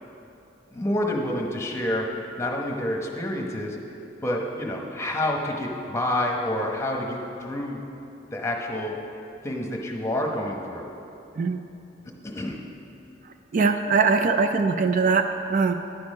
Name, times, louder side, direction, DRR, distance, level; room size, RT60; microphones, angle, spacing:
voice 1, 0.7-2.1 2.4-3.8 4.2-7.8 8.3-8.9 9.4-10.9 12.2-12.6, left 1 dB, 15° left, 0 dB, 1.0 m, -28 dB
voice 2, 13.5-15.7, right 4 dB, 45° right, 8 dB, 0.3 m, -21 dB
10.5 x 6.9 x 5.3 m, 2.9 s
head